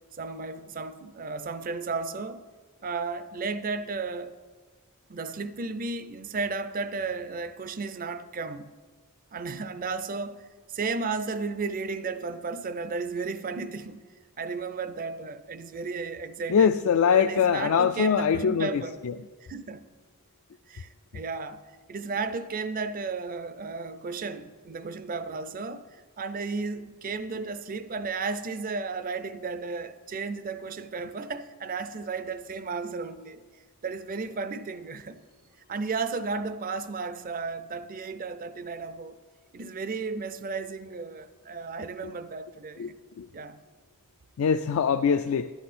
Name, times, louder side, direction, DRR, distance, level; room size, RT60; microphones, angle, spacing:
voice 1, 0.2-2.4 2.8-4.3 5.1-8.7 9.3-14.0 14.4-16.8 17.2-19.0 19.5-19.8 20.7-21.6 21.9-33.4 33.8-35.2 35.7-39.2 39.5-43.0 43.3-43.6, right 4 dB, 40° right, 0.5 m, -34 dB
voice 2, 16.5-19.3 42.0-42.1 42.8-42.9 43.2-43.3 44.4-45.5, left 6 dB, 65° left, 0.3 m, -23 dB
11.5 x 10.5 x 4.2 m
head